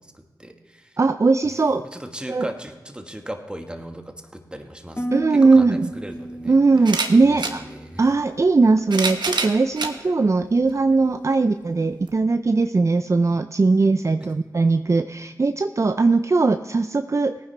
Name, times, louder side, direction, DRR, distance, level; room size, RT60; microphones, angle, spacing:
voice 1, 0.0-1.0 1.9-6.6 7.2-8.1 14.2-14.3, right 1 dB, 10° right, 5 dB, 1.4 m, -37 dB
voice 2, 1.0-1.9 2.3-2.5 5.1-5.9 6.5-7.6 8.0-17.4, right 3 dB, 40° right, 9 dB, 0.4 m, -19 dB
Harp, 5.0-9.1 9.4-9.9 10.4-10.7, right 1 dB, 20° left, 0.8 m, -36 dB
sound 1, 5.4-5.5 6.8-7.6 8.6-10.0 10.7-10.8 12.1-12.2, right 3 dB, 70° right, 1.1 m, -26 dB
18.0 x 9.8 x 3.3 m, 1.3 s
cardioid pair, 45°, 8 cm